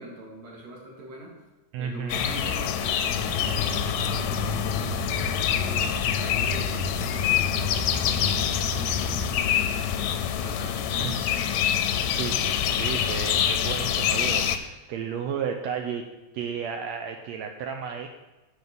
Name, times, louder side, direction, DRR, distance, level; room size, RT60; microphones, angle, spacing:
voice 1, 0.0-1.3 1.8-4.9 5.3-10.1 10.4-11.5, right 2 dB, 55° right, -2 dB, 3.2 m, -43 dB
voice 2, 1.7-2.4 10.9-11.2 12.0-16.1 16.3-18.1, right 7 dB, 85° right, 5 dB, 1.5 m, -33 dB
sound 1, 2.1-14.6, left 9 dB, 80° left, 1.9 m, -26 dB
sound 2, 3.1-9.3, left 2 dB, 65° left, 0.6 m, -33 dB
7.8 x 7.1 x 5.4 m, 1.1 s
omnidirectional pair, 3.8 m